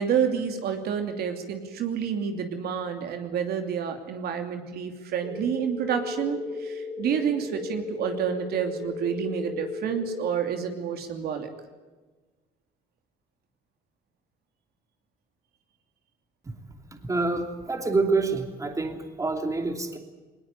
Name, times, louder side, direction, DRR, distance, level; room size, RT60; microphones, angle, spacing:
voice 1, 0.0-11.5, right 7 dB, 70° right, 6 dB, 2.8 m, -29 dB
sound 1, 5.2-10.2, left 3 dB, ahead, 5.0 m, -36 dB
voice 2, 17.0-20.0, right 3 dB, 20° right, 5 dB, 2.8 m, -27 dB
20.0 x 20.0 x 9.8 m, 1.3 s
cardioid pair, 110°, 17 cm